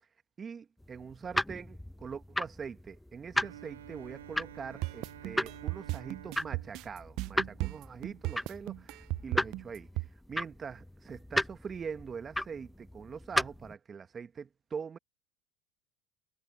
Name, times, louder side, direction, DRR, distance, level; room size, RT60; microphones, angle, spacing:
voice 1, 0.4-15.0, right 6 dB, 30° right, 1.2 m, -43 dB
sound 1, 0.8-13.7, left 1 dB, 5° left, 0.7 m, -37 dB
Bowed string instrument, 3.3-8.2, right 11 dB, 85° right, 2.2 m, -51 dB
sound 2, 4.8-10.1, right 22 dB, 60° right, 0.3 m, -35 dB
hypercardioid pair, 80°, 0 cm